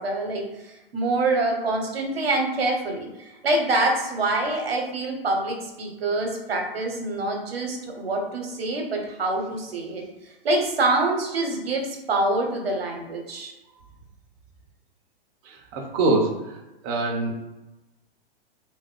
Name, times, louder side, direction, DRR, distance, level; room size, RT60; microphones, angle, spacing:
voice 1, 0.0-10.0 10.4-13.5, right 2 dB, 80° right, 2 dB, 1.1 m, -26 dB
voice 2, 15.4-16.6 16.8-17.3, right 2 dB, 40° right, 1 dB, 0.8 m, -24 dB
3.0 x 2.6 x 3.9 m, 1.0 s
hypercardioid pair, 120°, 30 cm